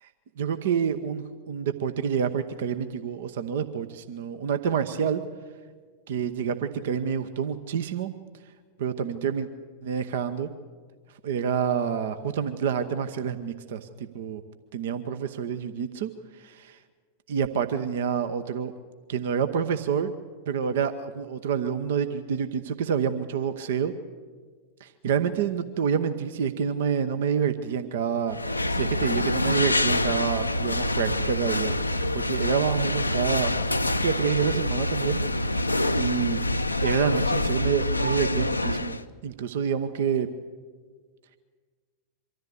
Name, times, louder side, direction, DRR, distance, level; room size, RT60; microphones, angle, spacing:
voice 1, 0.4-5.2 6.1-8.1 8.8-9.5 9.8-10.5 11.2-14.4 14.7-16.1 16.4-16.8 17.3-18.7 19.1-20.1 20.5-23.9 24.8-28.4 28.7-31.8 32.1-33.5 34.0-35.6 35.9-36.4 36.8-39.0 39.2-40.3, right 7 dB, 55° right, 10 dB, 0.9 m, -28 dB
sound 1, 28.3-39.0, left 1 dB, 85° left, 0.6 m, -26 dB
24.0 x 14.0 x 8.4 m, 1.5 s
figure-of-eight pair, 90°, 0 cm